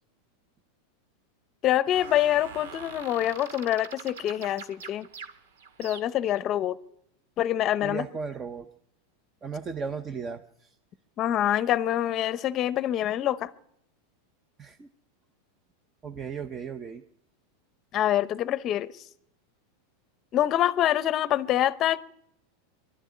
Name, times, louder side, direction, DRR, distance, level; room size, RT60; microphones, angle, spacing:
voice 1, 1.6-5.1 5.8-6.8 7.4-8.1 11.2-13.5 17.9-19.0 20.3-22.1, left 12 dB, 30° left, 0.8 m, -25 dB
sound 1, 1.9-6.4, right 6 dB, 85° right, 2.0 m, -44 dB
voice 2, 7.8-8.7 9.4-10.7 14.6-14.9 16.0-17.0, right 5 dB, 20° right, 0.8 m, -36 dB
24.5 x 12.5 x 9.6 m
supercardioid pair, 160°, 0 cm